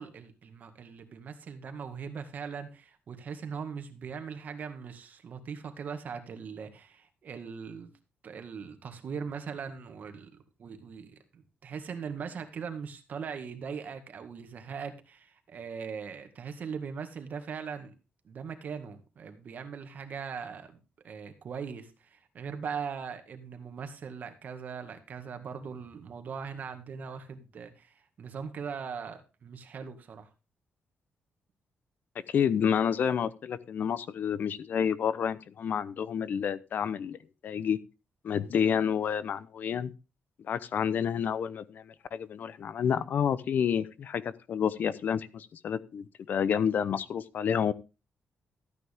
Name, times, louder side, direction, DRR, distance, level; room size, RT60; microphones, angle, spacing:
voice 1, 0.0-7.9 8.2-17.9 18.2-20.7 21.0-30.3, right 6 dB, 50° right, 7 dB, 1.9 m, -40 dB
voice 2, 32.3-37.2 37.4-37.8 38.2-39.9 40.5-47.7, left 8 dB, 55° left, 17 dB, 0.7 m, -29 dB
14.0 x 9.3 x 3.6 m, 0.29 s
cardioid pair, 140°, 4 cm